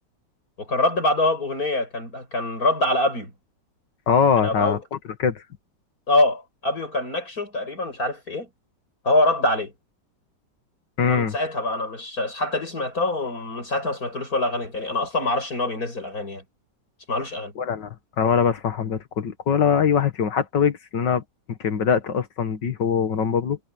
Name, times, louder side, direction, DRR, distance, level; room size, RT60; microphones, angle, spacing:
voice 1, 0.6-3.3 4.4-4.8 6.1-8.5 9.0-9.7 11.1-16.4 17.1-17.5, left 2 dB, 55° left, 8.3 m, -24 dB
voice 2, 4.1-5.4 11.0-11.4 17.6-21.2 21.5-23.6, left 7 dB, 75° left, 2.2 m, -22 dB
omnidirectional pair, 1.9 m